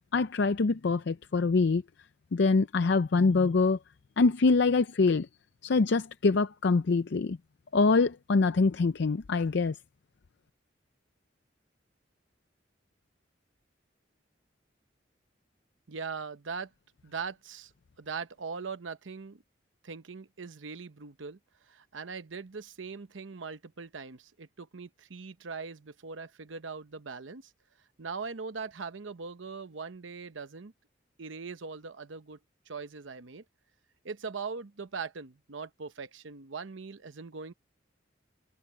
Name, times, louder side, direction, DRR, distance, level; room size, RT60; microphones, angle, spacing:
voice 1, 0.1-1.8 2.3-3.8 4.2-5.3 5.6-7.4 7.7-9.7, left 4 dB, 65° left, 0.5 m, -24 dB
voice 2, 15.9-16.7 17.0-17.7 18.0-19.4 19.8-27.5 28.0-30.7 31.2-32.4 32.7-33.4 34.0-37.5, right 5 dB, 85° right, 0.8 m, -40 dB
head